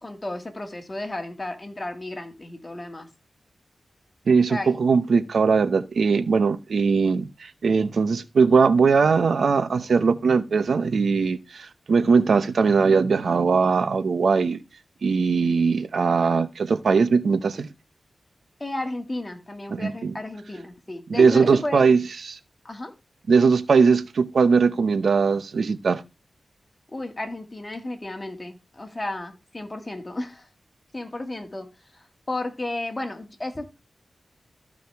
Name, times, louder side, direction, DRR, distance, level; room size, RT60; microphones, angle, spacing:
voice 1, 0.0-3.1 4.5-4.8 6.9-7.1 18.6-21.9 22.6-22.9 26.9-30.5 30.9-31.7 31.9-33.8, left 2 dB, 30° left, 2.2 m, -33 dB
voice 2, 4.3-14.6 15.0-17.7 19.7-20.1 21.1-22.4 23.3-26.0, right 5 dB, 80° right, 0.8 m, -20 dB
14.0 x 5.0 x 3.5 m
wide cardioid pair, 70°, 0 cm